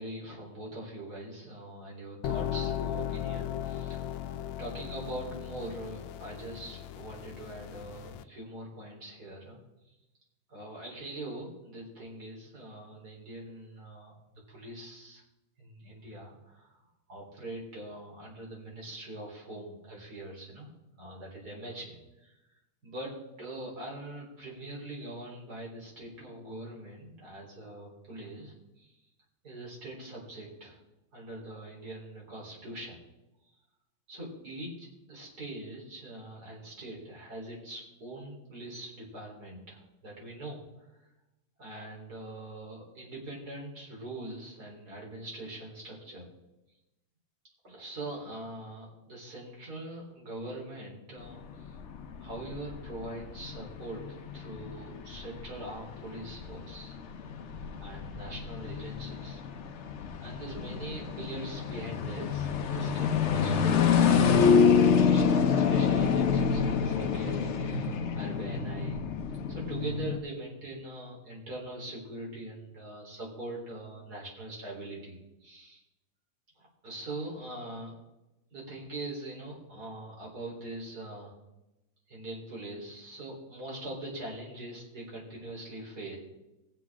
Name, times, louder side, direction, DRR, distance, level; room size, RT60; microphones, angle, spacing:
voice 1, 0.0-4.1 4.6-9.6 10.5-15.2 15.6-16.7 17.1-20.7 21.0-22.3 22.8-28.9 29.4-30.8 31.1-33.0 34.1-40.6 41.6-46.3 47.6-51.8 52.2-54.1 54.3-56.9 57.4-57.5 57.8-59.4 60.2-69.0 69.5-75.8 76.6-77.9 78.5-81.3 82.1-86.2, right 1 dB, 55° right, -2 dB, 4.3 m, -42 dB
sound 1, 2.2-8.2, left 10 dB, 85° left, 1.3 m, -36 dB
sound 2, 51.2-70.2, left 6 dB, 55° left, 0.8 m, -27 dB
20.0 x 7.9 x 3.6 m, 0.97 s
omnidirectional pair, 2.0 m